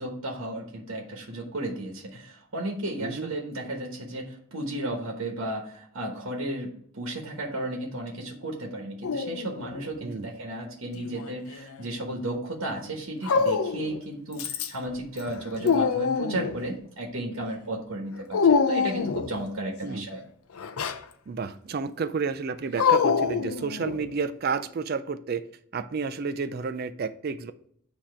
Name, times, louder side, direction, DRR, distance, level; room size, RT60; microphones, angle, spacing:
voice 1, 0.0-20.2, right 1 dB, 70° right, 0 dB, 1.1 m, -34 dB
voice 2, 3.0-3.3 10.0-10.3 19.8-20.1 21.3-25.4 25.7-27.5, right 5 dB, 45° right, 11 dB, 0.4 m, -31 dB
Dog, 9.0-9.9 11.0-11.8 13.2-14.0 14.4-14.9 15.3-16.6 18.3-19.4 20.6-21.0 22.8-24.1, left 5 dB, 75° left, 0.5 m, -25 dB
8.6 x 2.9 x 4.5 m, 0.62 s
head